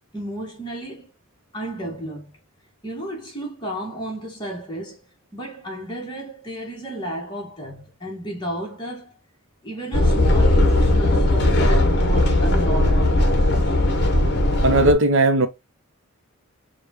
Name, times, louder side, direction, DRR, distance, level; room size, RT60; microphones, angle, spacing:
voice 1, 0.1-1.1 1.5-2.3 2.8-5.0 5.3-9.1 9.6-13.8, right 1 dB, 20° left, 1.4 m, -33 dB
sound 1, 9.9-14.9, left 1 dB, 50° left, 0.9 m, -18 dB
voice 2, 14.6-15.5, right 2 dB, 60° right, 0.7 m, -17 dB
6.7 x 2.4 x 2.8 m
head